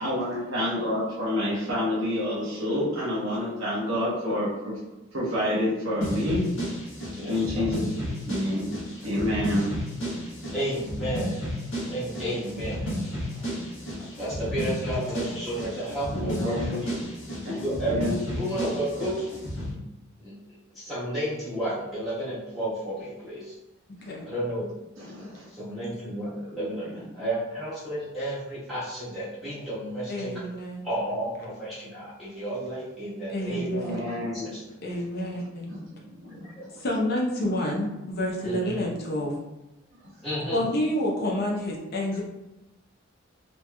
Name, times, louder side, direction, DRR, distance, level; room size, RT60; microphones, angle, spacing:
voice 1, 0.0-4.8 5.1-6.4 7.3-7.9 8.3-8.7 9.0-9.7 16.1-16.9 17.4-18.1 24.0-24.1 25.0-25.5 26.6-26.7 33.5-34.5 35.7-35.8 36.1-36.7 39.9-40.1, left 1 dB, 70° right, -7 dB, 0.9 m, -28 dB
sound 1, 6.0-19.7, equal, 85° left, 1.1 m, -33 dB
voice 2, 7.2-7.7 10.5-11.5 11.9-13.4 14.2-17.0 17.6-18.0 18.3-19.8 20.2-20.4 20.7-23.5 24.2-24.7 25.5-30.3 30.8-34.6 36.3-36.4 38.4-38.8 40.2-40.7, right 1 dB, ahead, -12 dB, 1.1 m, -32 dB
voice 3, 30.1-30.9 33.3-34.0 34.8-35.7 36.8-39.4 40.5-42.2, left 1 dB, 50° left, -2 dB, 0.7 m, -28 dB
3.0 x 2.9 x 2.2 m, 0.98 s
head